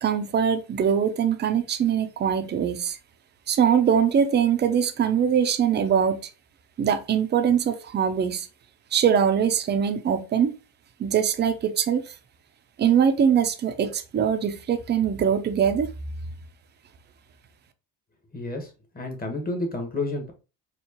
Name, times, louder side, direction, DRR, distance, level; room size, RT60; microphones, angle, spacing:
voice 1, 0.0-3.0 3.5-6.3 6.8-8.5 8.9-10.5 11.0-12.0 12.8-15.9, right 8 dB, 25° right, 0.5 m, -22 dB
voice 2, 18.3-18.7 18.9-20.3, left 2 dB, 20° left, 1.2 m, -30 dB
4.5 x 2.4 x 2.8 m
cardioid pair, 110°, 41 cm